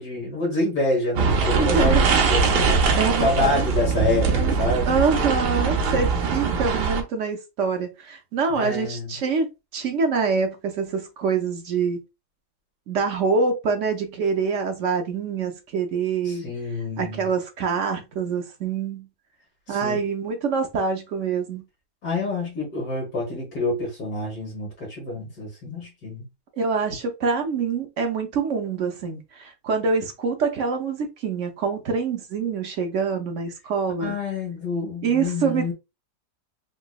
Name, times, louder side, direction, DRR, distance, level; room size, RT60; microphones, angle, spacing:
voice 1, 0.0-2.8 3.2-5.0 8.5-9.1 16.3-17.3 19.7-20.0 22.0-26.3 34.0-35.7, left 2 dB, 65° left, 1.9 m, -27 dB
sound 1, 1.2-7.0, right 5 dB, 80° right, 1.4 m, -21 dB
voice 2, 1.6-2.0 2.9-3.7 4.3-4.5 4.9-9.5 9.7-12.0 12.9-16.4 17.0-19.1 19.7-21.6 26.6-34.2 35.0-35.7, right 5 dB, 60° right, 0.9 m, -25 dB
3.9 x 2.9 x 2.3 m
omnidirectional pair, 1.8 m